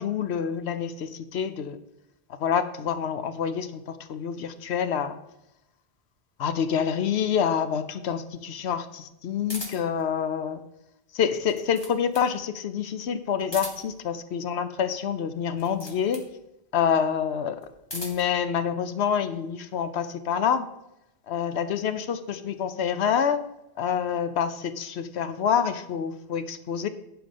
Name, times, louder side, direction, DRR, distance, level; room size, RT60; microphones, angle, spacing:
voice 1, 0.0-1.8 2.4-5.2 6.4-10.6 11.1-16.2 16.7-17.6 17.9-20.7 21.3-23.4 23.8-26.9, left 8 dB, 80° left, 11 dB, 1.0 m, -27 dB
sound 1, 9.5-10.0 11.3-12.3 13.4-14.0 15.5-16.3 17.6-18.3, left 1 dB, 25° left, 1.7 m, -39 dB
11.5 x 4.9 x 5.3 m, 0.88 s
omnidirectional pair, 1.1 m